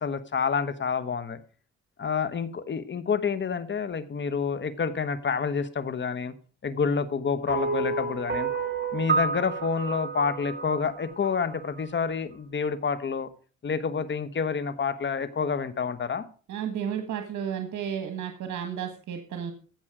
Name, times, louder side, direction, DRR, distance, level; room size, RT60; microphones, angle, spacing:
voice 1, 0.0-1.4 2.0-6.3 6.6-8.5 8.9-13.3 13.6-16.2, left 6 dB, 40° left, 13 dB, 1.2 m, -28 dB
sound 1, 7.5-11.8, right 4 dB, 40° right, 2.2 m, -30 dB
voice 2, 16.5-19.5, right 8 dB, 70° right, 5 dB, 1.7 m, -32 dB
15.0 x 6.0 x 5.0 m, 0.39 s
cardioid pair, 90°, 30 cm